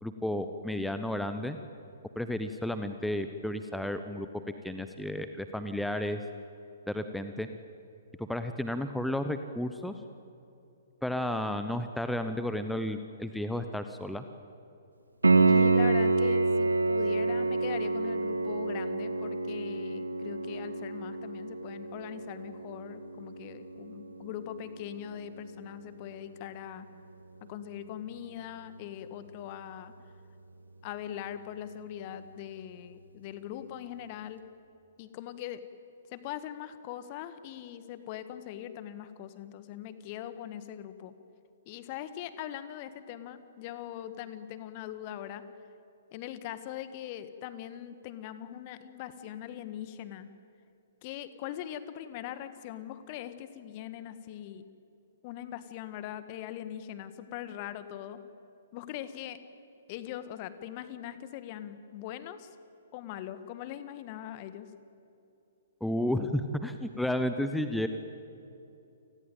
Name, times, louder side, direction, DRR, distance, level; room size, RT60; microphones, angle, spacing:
voice 1, 0.0-1.6 2.2-4.3 4.6-6.2 6.9-7.5 8.2-9.9 11.0-14.2 65.8-67.9, left 1 dB, ahead, 8 dB, 1.0 m, -32 dB
Piano, 15.2-25.9 29.2-29.3, right 3 dB, 75° right, 2.1 m, -28 dB
voice 2, 15.5-26.9 27.4-29.9 30.8-34.4 35.0-35.6 36.1-41.1 41.6-45.4 46.1-50.3 51.0-54.6 55.2-58.2 58.7-59.4 59.9-62.5 62.9-64.7, left 11 dB, 35° left, 12 dB, 1.6 m, -41 dB
29.5 x 19.5 x 9.2 m, 2.7 s
figure-of-eight pair, 120°, 0 cm